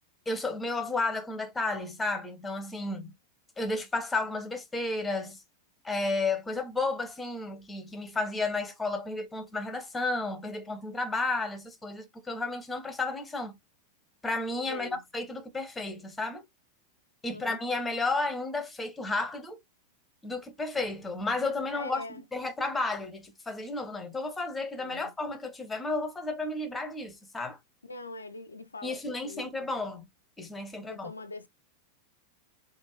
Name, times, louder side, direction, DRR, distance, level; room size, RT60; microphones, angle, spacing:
voice 1, 0.3-3.1 3.6-5.4 5.8-13.5 14.2-16.4 17.2-19.6 20.2-22.0 22.3-27.6 28.8-30.0 30.4-31.1, left 3 dB, 10° left, 0.8 m, -32 dB
voice 2, 14.7-15.0 17.3-17.6 21.7-22.2 24.8-25.1 27.9-29.7 30.8-31.5, left 2 dB, 80° left, 0.3 m, -43 dB
3.5 x 2.4 x 3.0 m
figure-of-eight pair, 90°, 0 cm